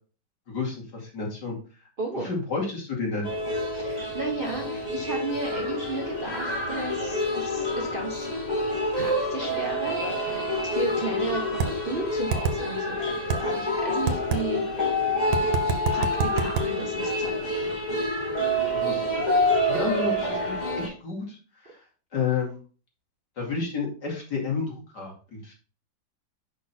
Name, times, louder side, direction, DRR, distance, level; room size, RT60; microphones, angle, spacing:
voice 1, 0.5-1.6 2.1-3.3 18.7-19.2 19.7-21.4 22.1-22.6 23.4-25.5, left 4 dB, 60° left, -2 dB, 2.9 m, -31 dB
voice 2, 2.0-2.3 3.7-8.3 8.9-14.9 15.9-17.8, right 3 dB, 35° right, 0 dB, 0.9 m, -34 dB
sound 1, 3.2-20.9, left 1 dB, 20° left, 2.2 m, -27 dB
sound 2, 11.6-11.7 12.3-12.6 13.3-13.4 14.1-14.4 15.3-16.7, right 6 dB, 90° right, 1.6 m, -24 dB
6.4 x 5.4 x 4.3 m, 0.37 s
omnidirectional pair, 2.1 m